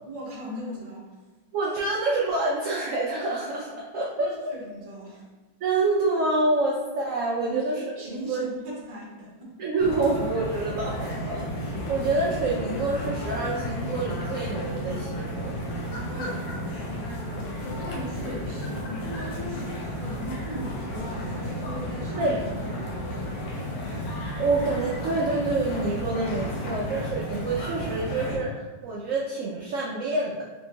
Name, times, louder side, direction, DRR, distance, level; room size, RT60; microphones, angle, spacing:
voice 1, 0.0-1.2 4.1-5.3 7.5-9.6 11.8-11.9 16.0-22.4 22.6-23.3 26.7-26.9, equal, 35° right, -4 dB, 0.6 m, -39 dB
voice 2, 1.5-4.3 5.6-7.8 8.1-8.4 9.6-11.5 11.9-15.7 22.2-22.4 24.4-30.4, right 2 dB, 75° right, -4 dB, 0.7 m, -27 dB
sound 1, 9.8-28.4, equal, 65° left, 1.1 m, -33 dB
3.5 x 2.7 x 2.8 m, 1.3 s
omnidirectional pair, 1.9 m